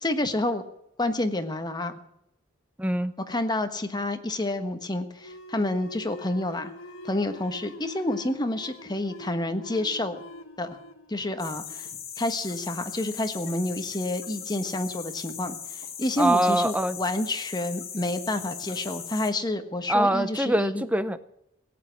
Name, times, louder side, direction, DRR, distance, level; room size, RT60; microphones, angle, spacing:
voice 1, 0.0-0.6 1.0-2.0 3.3-6.7 7.0-10.2 10.6-10.8 11.1-11.9 12.2-20.8, left 1 dB, 20° left, 8 dB, 1.3 m, -29 dB
voice 2, 2.8-3.1 16.2-17.0 19.9-21.2, right 1 dB, 5° right, 13 dB, 0.6 m, -23 dB
sound 1, 5.2-12.4, left 1 dB, 80° left, 1.4 m, -45 dB
sound 2, 11.4-19.3, left 8 dB, 50° left, 2.3 m, -39 dB
17.0 x 8.6 x 9.3 m, 0.80 s
head